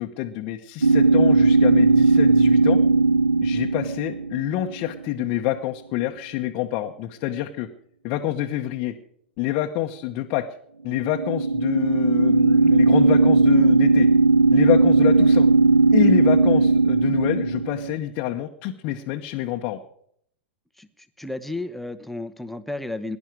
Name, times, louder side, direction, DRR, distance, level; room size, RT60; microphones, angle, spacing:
voice 1, 0.0-2.8 3.4-7.7 8.0-9.0 9.4-10.4 10.8-14.1 14.5-15.5 15.9-19.8, left 13 dB, 45° left, 2 dB, 1.0 m, -27 dB
sound 1, 0.8-4.9 10.9-17.9, right 3 dB, 90° right, 0.5 m, -17 dB
voice 2, 21.2-23.2, left 2 dB, 5° left, 10 dB, 1.0 m, -32 dB
17.5 x 11.0 x 4.8 m, 0.67 s
figure-of-eight pair, 95°, 6 cm